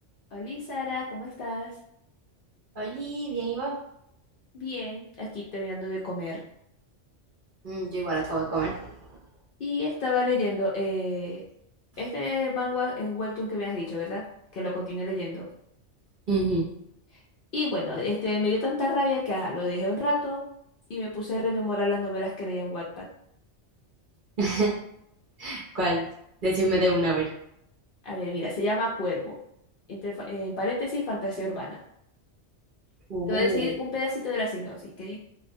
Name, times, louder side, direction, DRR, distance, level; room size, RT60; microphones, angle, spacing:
voice 1, 0.3-1.7 4.5-6.4 9.6-11.4 12.0-14.2 14.5-15.5 17.5-20.4 20.9-23.0 28.0-29.4 29.9-31.8 33.3-35.2, left 2 dB, 60° left, -4 dB, 0.6 m, -29 dB
voice 2, 2.7-3.8 7.6-9.0 16.3-16.7 24.4-24.7 25.4-26.1 26.4-27.3 33.1-33.7, right 2 dB, 50° right, -5 dB, 0.7 m, -27 dB
2.3 x 2.1 x 2.5 m, 0.74 s
omnidirectional pair, 1.2 m